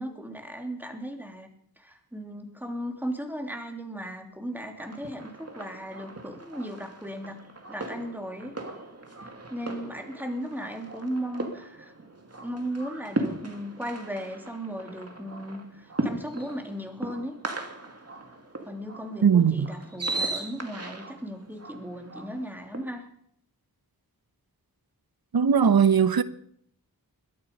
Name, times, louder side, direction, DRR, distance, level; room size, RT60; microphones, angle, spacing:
voice 1, 0.0-1.5 1.8-8.5 9.5-11.9 12.4-17.3 18.6-23.0, equal, 5° right, 3.0 m, -36 dB
sound 1, 4.8-22.8, right 2 dB, 40° right, 2.5 m, -38 dB
voice 2, 19.2-19.7 25.3-26.2, right 7 dB, 80° right, 0.9 m, -19 dB
22.0 x 12.0 x 5.4 m
wide cardioid pair, 70°, 36 cm